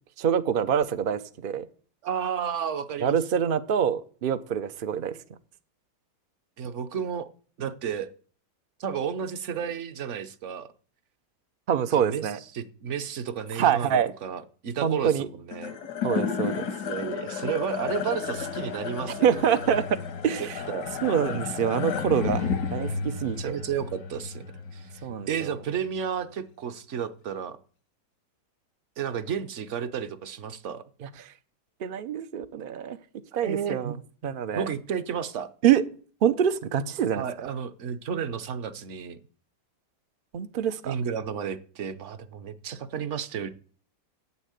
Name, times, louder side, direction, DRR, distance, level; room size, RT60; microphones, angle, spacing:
voice 1, 0.2-1.7 3.0-5.2 11.7-12.4 13.6-14.1 14.8-15.3 16.0-16.7 19.2-19.8 20.2-20.6 21.0-23.6 25.0-25.5 31.0-31.1 31.8-33.0 33.4-33.9 34.2-34.7 35.6-35.8 36.2-37.2 40.3-40.9, right 8 dB, 80° right, 0.4 m, -25 dB
voice 2, 2.0-3.2 6.6-7.3 7.6-8.1 8.8-10.7 12.0-15.7 16.8-19.3 20.4-20.9 23.4-24.5 24.7-24.9 25.3-27.6 29.0-30.9 33.4-34.0 34.5-35.5 37.1-39.2 40.8-43.5, right 8 dB, 55° right, 0.9 m, -32 dB
sound 1, 15.5-26.0, left 6 dB, 90° left, 2.0 m, -32 dB
8.3 x 7.2 x 8.1 m
omnidirectional pair, 1.8 m